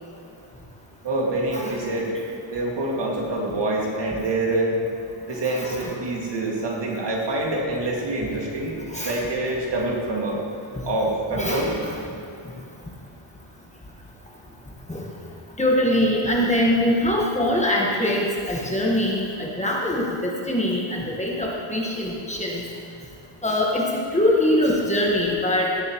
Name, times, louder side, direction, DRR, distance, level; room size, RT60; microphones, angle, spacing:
voice 1, 1.0-2.2 2.5-4.7 5.3-10.5 10.8-11.7, right 2 dB, 55° right, -2 dB, 2.1 m, -26 dB
voice 2, 5.4-5.9 8.9-9.2 11.4-11.9 14.9-15.0 15.6-22.6 23.4-23.8 24.1-25.7, left 1 dB, 15° left, -4 dB, 1.4 m, -23 dB
16.5 x 10.5 x 3.0 m, 2.5 s
wide cardioid pair, 165°, 50 cm